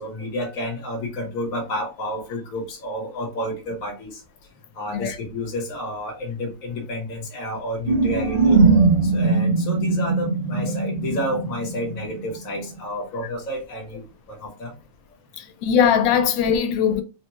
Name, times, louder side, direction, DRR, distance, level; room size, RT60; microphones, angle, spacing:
voice 1, 0.0-4.1 4.7-8.5 9.0-14.0 14.3-14.7, left 1 dB, 55° left, 1.3 m, -30 dB
sound 1, 7.9-12.4, right 4 dB, 85° right, 1.7 m, -20 dB
voice 2, 15.4-17.0, left 8 dB, 85° left, 1.3 m, -20 dB
3.6 x 2.1 x 2.9 m
omnidirectional pair, 2.0 m